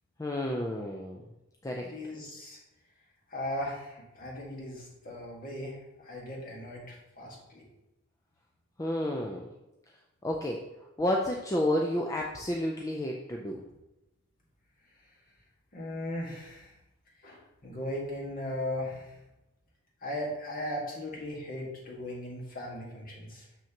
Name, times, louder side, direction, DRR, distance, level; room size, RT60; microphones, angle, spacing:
voice 1, 0.2-1.2 1.6-1.9 8.8-9.5 10.2-10.6 11.0-13.6, left 1 dB, 15° left, 0 dB, 0.4 m, -30 dB
voice 2, 1.8-2.6 3.3-7.6 15.7-16.7 17.2-19.2 20.0-23.4, left 1 dB, 40° left, -3 dB, 1.7 m, -38 dB
6.5 x 6.0 x 2.9 m, 0.96 s
head